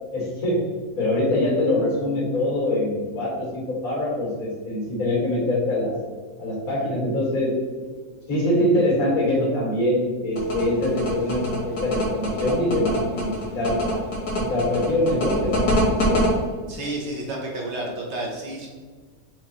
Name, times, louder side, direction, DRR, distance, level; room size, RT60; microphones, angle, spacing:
voice 1, 0.1-0.7 1.0-5.9 6.4-7.6 8.3-14.0 14.4-16.3, left 1 dB, 75° left, -4 dB, 2.0 m, -24 dB
sound 1, 10.4-16.3, left 1 dB, 90° left, 1.7 m, -25 dB
voice 2, 16.7-18.7, right 1 dB, 55° right, -1 dB, 0.9 m, -31 dB
4.8 x 2.4 x 4.0 m, 1.5 s
omnidirectional pair, 1.5 m